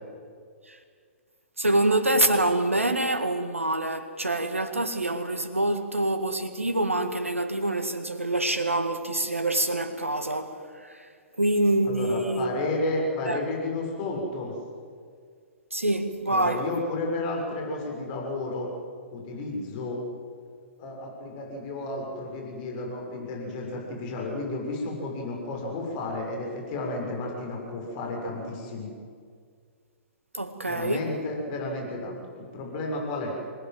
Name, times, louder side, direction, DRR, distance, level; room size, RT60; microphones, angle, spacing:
voice 1, 1.6-11.1 11.4-12.5 13.2-13.4 15.7-16.7 30.3-31.1, right 1 dB, 90° right, 2.1 m, -26 dB
voice 2, 11.8-14.5 16.3-18.7 19.1-20.0 20.8-28.9 30.6-33.3, left 2 dB, 40° left, 6.7 m, -32 dB
26.5 x 20.5 x 7.8 m
figure-of-eight pair, 120°, 7 cm